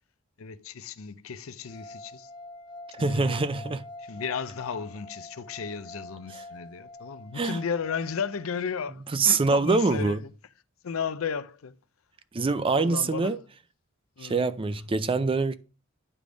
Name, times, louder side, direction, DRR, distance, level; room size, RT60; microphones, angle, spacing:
voice 1, 0.4-2.3 3.0-3.4 4.0-10.3 10.8-11.8 12.7-13.4 14.2-14.4, left 6 dB, 90° left, 0.6 m, -34 dB
sound 1, 1.6-8.8, left 2 dB, 20° left, 0.5 m, -45 dB
voice 2, 3.0-3.9 7.3-7.6 9.1-10.2 12.3-13.4 14.2-15.5, right 3 dB, 25° right, 0.4 m, -24 dB
9.7 x 3.4 x 5.1 m
head